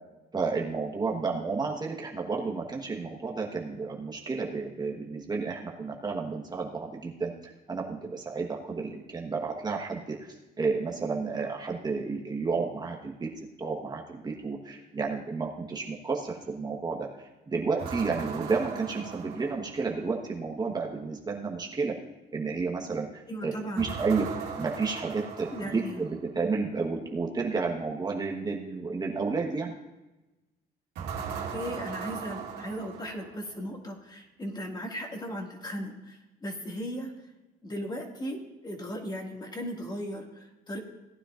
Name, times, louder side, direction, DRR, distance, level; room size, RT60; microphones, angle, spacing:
voice 1, 0.3-13.3 13.6-22.0 22.3-24.3 24.6-29.7, right 4 dB, 25° right, -1 dB, 1.3 m, -31 dB
sound 1, 17.8-20.1 23.8-26.3 30.9-33.6, right 7 dB, 80° right, 2.2 m, -38 dB
voice 2, 23.3-23.9 25.5-26.0 31.5-37.1 37.6-40.8, equal, 25° left, 1 dB, 2.1 m, -37 dB
18.0 x 9.9 x 2.5 m, 1.1 s
cardioid pair, 110°, 17 cm